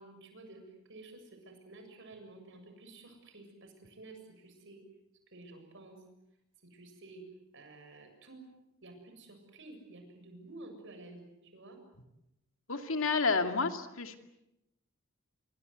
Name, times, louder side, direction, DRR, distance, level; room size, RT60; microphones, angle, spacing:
voice 1, 0.0-4.8 5.3-6.0 6.6-7.2 7.5-8.5 8.8-11.8, right 2 dB, 60° right, 6 dB, 7.4 m, -52 dB
voice 2, 12.7-14.2, left 4 dB, 65° left, 6 dB, 2.5 m, -30 dB
28.0 x 23.5 x 8.1 m, 0.88 s
head